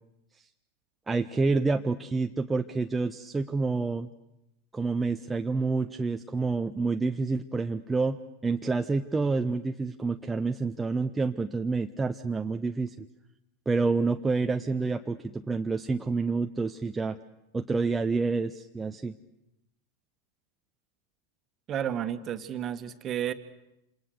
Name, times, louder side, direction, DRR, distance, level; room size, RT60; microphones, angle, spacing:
voice 1, 1.1-4.1 4.7-12.9 13.7-17.2 17.5-19.1, right 4 dB, 10° right, 6 dB, 0.9 m, -28 dB
voice 2, 21.7-23.3, right 10 dB, 30° right, 10 dB, 1.8 m, -31 dB
28.5 x 27.5 x 6.8 m, 0.90 s
figure-of-eight pair, 90°, 0 cm